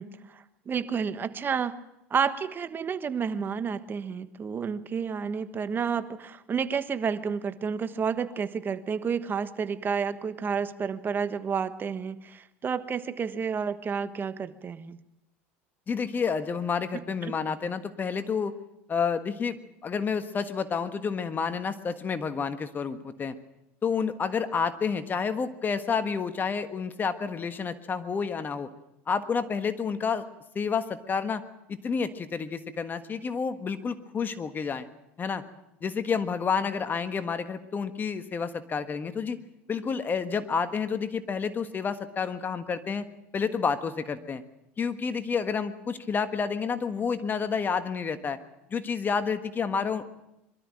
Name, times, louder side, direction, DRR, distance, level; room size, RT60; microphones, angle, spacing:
voice 1, 0.0-1.8 2.1-15.0 16.9-17.3, right 6 dB, 30° right, 12 dB, 1.3 m, -30 dB
voice 2, 15.9-18.5 18.9-19.6 19.8-23.4 23.8-28.7 29.1-30.2 30.5-31.4 31.7-34.9 35.2-35.4 35.8-39.4 39.7-43.0 43.3-44.4 44.8-48.4 48.7-50.1, left 6 dB, 30° left, 10 dB, 1.5 m, -29 dB
23.0 x 13.0 x 9.0 m, 0.86 s
supercardioid pair, 100°, 7 cm